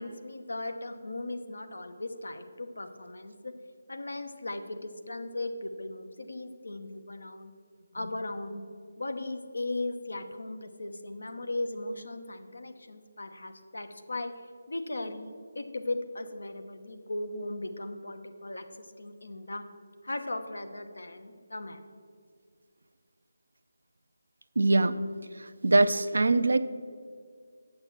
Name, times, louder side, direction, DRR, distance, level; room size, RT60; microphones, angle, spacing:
voice 1, 0.0-3.5 3.9-7.5 7.9-8.7 9.0-14.3 14.7-19.6 20.0-21.8, left 2 dB, 75° left, 7 dB, 1.0 m, -37 dB
voice 2, 24.6-25.0 25.4-26.6, right 2 dB, 75° right, 11 dB, 0.5 m, -23 dB
8.0 x 6.6 x 7.4 m, 2.1 s
figure-of-eight pair, 155°, 0 cm